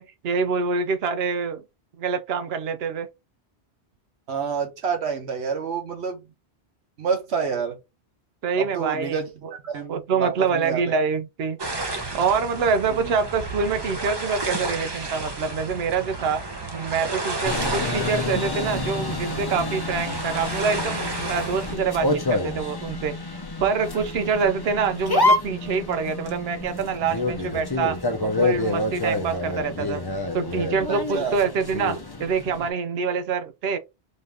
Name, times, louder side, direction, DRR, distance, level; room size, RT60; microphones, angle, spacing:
voice 1, 0.0-1.6 2.0-3.1 8.4-9.5 9.9-11.6 12.1-16.4 16.7-23.2 23.6-30.0 30.3-33.8, right 5 dB, 70° right, 0.9 m, -26 dB
voice 2, 4.3-6.3 7.0-7.8 8.6-9.3 9.6-10.8 12.9-13.2 17.6-17.8 30.9-31.4, right 6 dB, 90° right, 1.3 m, -28 dB
sound 1, 11.6-21.8, right 2 dB, 25° right, 0.8 m, -32 dB
sound 2, 17.4-32.7, left 2 dB, 25° left, 0.7 m, -28 dB
4.2 x 2.6 x 3.4 m
omnidirectional pair, 1.1 m